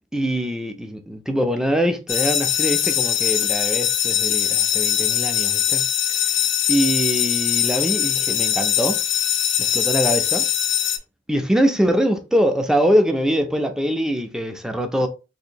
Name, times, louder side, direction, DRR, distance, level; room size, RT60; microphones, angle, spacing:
voice 1, 0.1-5.8 6.7-9.0 9.6-10.5 11.3-15.1, equal, 5° right, 0.3 m, -23 dB
sound 1, 2.1-11.0, left 10 dB, 65° left, 0.5 m, -21 dB
3.5 x 2.8 x 2.5 m
head